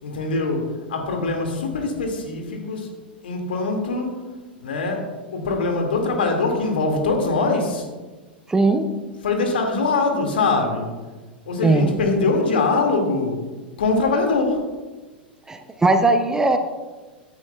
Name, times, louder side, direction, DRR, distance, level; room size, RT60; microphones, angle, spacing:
voice 1, 0.0-2.9 3.2-4.2 4.6-5.1 5.3-7.9 9.2-10.9 11.5-13.4 13.8-14.6, left 3 dB, 65° left, 3 dB, 2.0 m, -22 dB
voice 2, 8.5-8.9 11.6-11.9 15.5-16.6, right 2 dB, 10° right, 7 dB, 0.7 m, -18 dB
15.0 x 9.7 x 2.3 m, 1.3 s
figure-of-eight pair, 95°, 6 cm